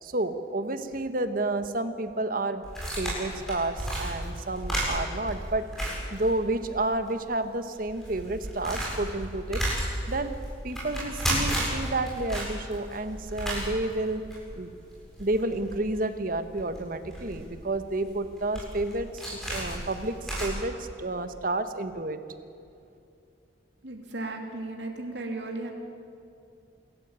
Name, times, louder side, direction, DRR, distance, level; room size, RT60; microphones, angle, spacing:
voice 1, 0.0-2.7 3.0-5.6 6.1-9.6 10.1-10.4 10.6-14.2 14.6-14.7 15.2-22.2, right 2 dB, 50° right, 9 dB, 1.4 m, -30 dB
sound 1, 2.6-6.8 7.1-7.2 7.7-20.5, right 1 dB, ahead, 7.8 m, -33 dB
voice 2, 23.8-25.7, right 2 dB, 70° right, 2 dB, 3.1 m, -35 dB
27.5 x 14.0 x 9.0 m, 2.5 s
head